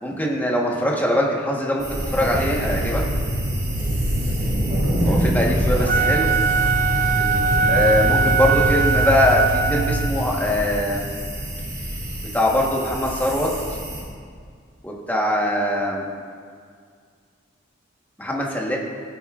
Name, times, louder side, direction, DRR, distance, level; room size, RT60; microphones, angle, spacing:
voice 1, 0.0-3.0 5.1-6.3 7.7-11.1 12.3-13.5 14.8-16.1 18.2-18.8, left 1 dB, 10° left, -2 dB, 1.2 m, -22 dB
sound 1, 1.8-14.0, equal, 20° right, 2.5 m, -28 dB
sound 2, 2.3-10.1, right 1 dB, 65° right, 0.8 m, -25 dB
voice 2, 3.8-4.2 4.7-8.2, right 1 dB, 90° right, -4 dB, 2.3 m, -35 dB
Wind instrument woodwind instrument, 5.8-10.2, right 5 dB, 45° right, 0.4 m, -21 dB
16.0 x 9.4 x 2.5 m, 2.1 s
head